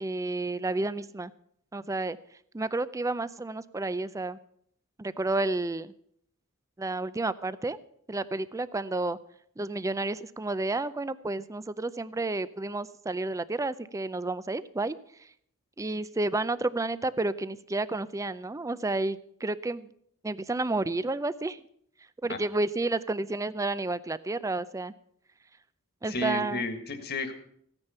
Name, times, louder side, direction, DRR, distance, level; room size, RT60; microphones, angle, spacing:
voice 1, 0.0-1.3 1.7-2.2 2.5-4.4 5.0-5.9 6.8-7.8 8.1-9.2 9.6-15.3 15.8-19.9 20.2-21.6 22.2-24.9 26.0-26.7, right 2 dB, 15° right, 16 dB, 0.4 m, -31 dB
voice 2, 26.1-27.3, left 2 dB, 50° left, 8 dB, 1.7 m, -32 dB
16.0 x 9.8 x 5.6 m, 0.68 s
head